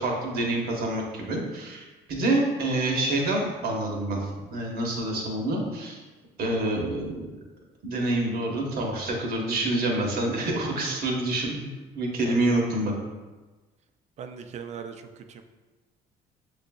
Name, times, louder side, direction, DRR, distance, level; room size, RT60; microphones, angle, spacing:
voice 1, 0.0-1.8 2.1-6.0 6.4-7.3 7.8-12.9, right 2 dB, 65° right, -1 dB, 1.0 m, -27 dB
voice 2, 14.2-15.4, right 6 dB, 40° right, 7 dB, 0.4 m, -40 dB
6.4 x 2.5 x 2.2 m, 1.2 s
cardioid pair, 110°, 17 cm